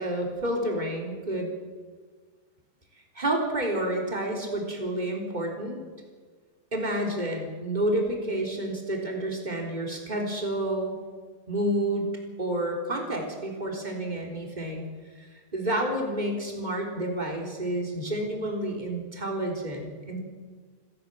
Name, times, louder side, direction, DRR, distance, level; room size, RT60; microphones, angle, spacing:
voice 1, 0.0-1.5 3.2-5.8 6.7-11.0 11.5-12.1 12.4-14.9 15.2-20.2, right 1 dB, 10° right, 1 dB, 3.6 m, -29 dB
28.5 x 10.5 x 9.1 m, 1.5 s
omnidirectional pair, 4.1 m